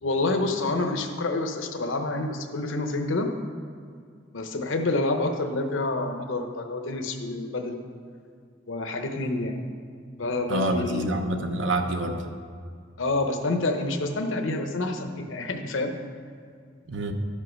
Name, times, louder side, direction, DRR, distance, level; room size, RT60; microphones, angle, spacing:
voice 1, 0.0-3.3 4.3-7.8 8.7-9.6 10.2-11.1 13.0-15.9, left 2 dB, 85° left, 5 dB, 0.8 m, -28 dB
voice 2, 10.5-12.2 16.9-17.1, right 1 dB, 70° right, 5 dB, 0.9 m, -27 dB
11.5 x 5.5 x 6.3 m, 2.2 s
head